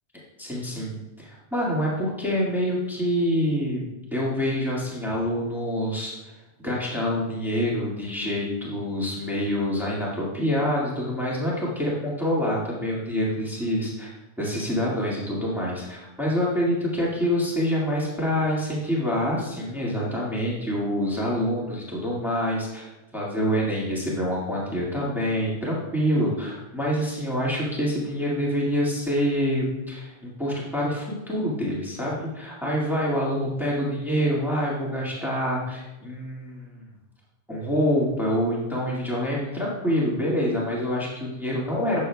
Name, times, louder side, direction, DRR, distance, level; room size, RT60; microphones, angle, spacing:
voice 1, 0.4-6.3 6.6-36.9 37.5-42.0, equal, ahead, -6 dB, 1.9 m, -26 dB
11.5 x 7.1 x 2.3 m, 1.0 s
omnidirectional pair, 1.2 m